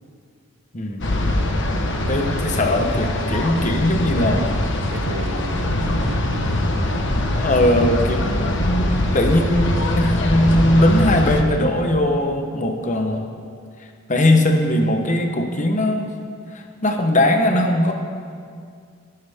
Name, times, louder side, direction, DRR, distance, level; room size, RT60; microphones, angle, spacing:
voice 1, 0.7-1.5 2.1-4.5 7.4-13.3 14.1-16.1 16.5-17.9, left 1 dB, 35° left, 4 dB, 1.1 m, -20 dB
sound 1, 1.0-11.4, left 1 dB, 55° left, 1.2 m, -22 dB
voice 2, 4.9-7.0, right 2 dB, 60° right, 6 dB, 0.9 m, -34 dB
19.0 x 12.5 x 3.6 m, 2.2 s
head